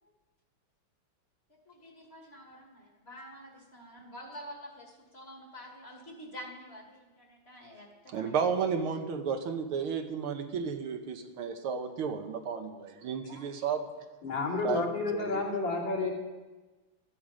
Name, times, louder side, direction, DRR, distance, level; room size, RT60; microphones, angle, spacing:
voice 1, 1.5-8.5 13.2-13.5 14.3-14.4, equal, 30° left, 1 dB, 2.3 m, -48 dB
voice 2, 8.1-13.9 14.6-14.8 15.1-15.4, right 6 dB, 80° right, 6 dB, 1.9 m, -33 dB
voice 3, 14.2-16.1, left 3 dB, 55° left, -4 dB, 3.6 m, -30 dB
15.0 x 12.5 x 5.0 m, 1.2 s
omnidirectional pair, 2.4 m